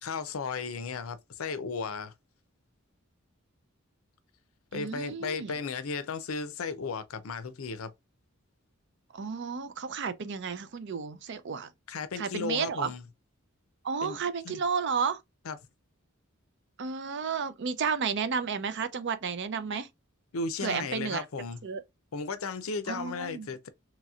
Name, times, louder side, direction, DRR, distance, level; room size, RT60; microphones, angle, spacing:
voice 1, 0.0-2.1 4.7-7.9 11.9-13.0 14.0-14.6 15.5-15.6 20.3-21.6 22.1-23.7, left 4 dB, 75° left, 0.5 m, -35 dB
voice 2, 4.7-5.5 9.1-11.7 12.2-12.9 13.8-15.2 16.8-19.9 20.6-21.2 21.6-21.8 22.9-23.5, right 6 dB, 55° right, 0.5 m, -32 dB
3.0 x 2.9 x 2.3 m
head